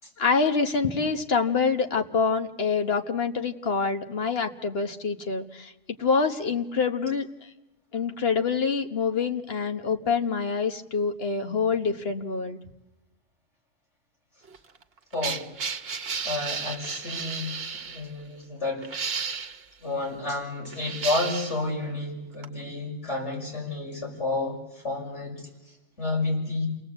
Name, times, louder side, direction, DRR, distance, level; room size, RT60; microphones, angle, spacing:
voice 1, 0.2-5.7 6.0-7.5 7.9-12.6, left 5 dB, 55° left, 6 dB, 1.5 m, -26 dB
sound 1, 14.5-18.0 18.8-19.6 20.7-21.6 22.4-22.5, right 5 dB, 60° right, 1.2 m, -33 dB
voice 2, 15.1-15.4 16.2-17.6 17.9-19.0 19.8-26.7, left 2 dB, 75° left, -2 dB, 6.5 m, -31 dB
29.0 x 19.0 x 8.1 m, 1.0 s
omnidirectional pair, 1.2 m